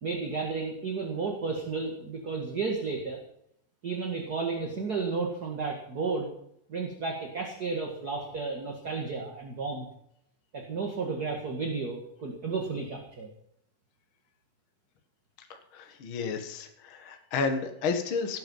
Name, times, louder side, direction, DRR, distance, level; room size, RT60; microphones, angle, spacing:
voice 1, 0.0-3.2 3.8-6.3 6.7-9.9 10.5-13.3, right 4 dB, 35° right, 2 dB, 1.9 m, -32 dB
voice 2, 15.5-18.4, left 4 dB, 45° left, 6 dB, 2.0 m, -32 dB
18.0 x 9.4 x 5.5 m, 0.71 s
omnidirectional pair, 4.0 m